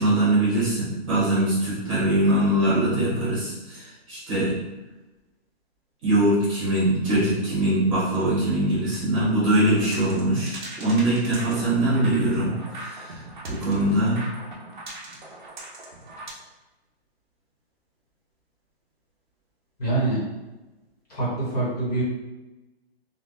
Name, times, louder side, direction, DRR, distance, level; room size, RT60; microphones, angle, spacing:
voice 1, 0.0-4.5 6.0-13.2 13.5-14.2, right 1 dB, 30° right, -9 dB, 1.2 m, -22 dB
sound 1, 9.8-16.3, right 2 dB, 45° right, 0.6 m, -40 dB
voice 2, 19.8-20.2 21.1-22.0, right 2 dB, 35° left, -8 dB, 1.2 m, -25 dB
3.4 x 2.2 x 2.5 m, 1.1 s
hypercardioid pair, 175°, 32 cm